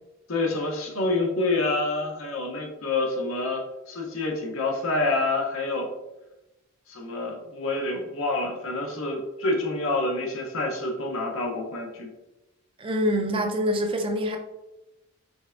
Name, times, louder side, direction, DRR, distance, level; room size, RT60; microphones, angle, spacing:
voice 1, 0.3-5.9 6.9-12.1, left 2 dB, 70° left, 1 dB, 0.9 m, -27 dB
voice 2, 12.8-14.4, equal, 25° right, 4 dB, 0.5 m, -25 dB
5.2 x 3.3 x 2.5 m, 0.98 s
head